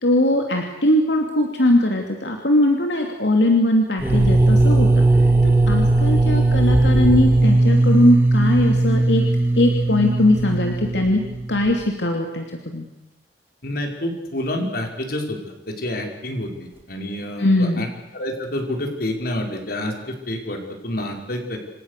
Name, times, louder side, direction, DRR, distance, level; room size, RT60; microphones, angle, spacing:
voice 1, 0.0-5.1 5.4-9.2 9.6-11.2 11.5-12.8 17.4-17.9, left 1 dB, 80° left, 2 dB, 2.8 m, -20 dB
sound 1, 4.0-11.7, right 2 dB, 15° right, 3.4 m, -18 dB
voice 2, 13.6-15.4 15.8-17.9 18.1-19.9 20.3-21.6, left 1 dB, 60° left, 3 dB, 5.5 m, -28 dB
28.5 x 26.5 x 6.8 m, 0.92 s
head